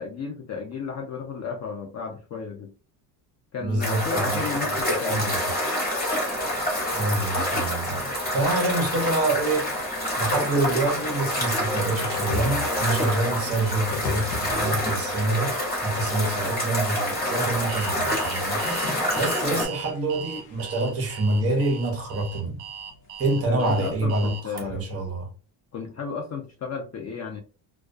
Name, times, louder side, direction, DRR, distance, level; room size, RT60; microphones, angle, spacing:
voice 1, 0.0-2.7 3.5-5.3 17.2-17.5 19.4-19.6 23.5-24.8 25.7-27.4, left 5 dB, 35° left, 0.5 m, -33 dB
voice 2, 3.6-4.8 5.1-5.4 6.9-9.7 10.2-15.6 15.8-18.6 19.2-22.6 23.2-25.3, right 2 dB, 30° right, 0.8 m, -26 dB
sound 1, 3.8-19.6, left 1 dB, 20° left, 0.9 m, -27 dB
sound 2, 6.3-24.3, left 7 dB, 85° left, 0.7 m, -42 dB
Alarm, 17.7-24.6, right 7 dB, 50° right, 0.9 m, -39 dB
2.3 x 2.2 x 2.4 m
cardioid pair, 135°, 48 cm